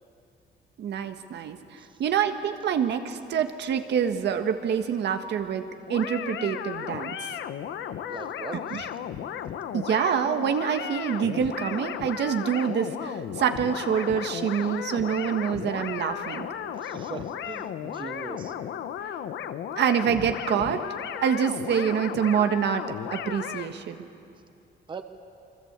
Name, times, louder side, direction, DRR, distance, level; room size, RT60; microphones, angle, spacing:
voice 1, 0.8-1.6 2.0-5.6 5.9-7.2 8.7-8.9 9.7-16.4 19.8-22.9 23.1-24.0, right 8 dB, 70° right, 7 dB, 1.6 m, -26 dB
sound 1, 5.9-23.7, left 9 dB, 85° left, 1.1 m, -35 dB
voice 2, 8.1-8.8 16.8-18.5 24.9-25.0, right 5 dB, 25° right, 8 dB, 1.2 m, -40 dB
28.5 x 22.5 x 8.2 m, 2.5 s
cardioid pair, 170°, 19 cm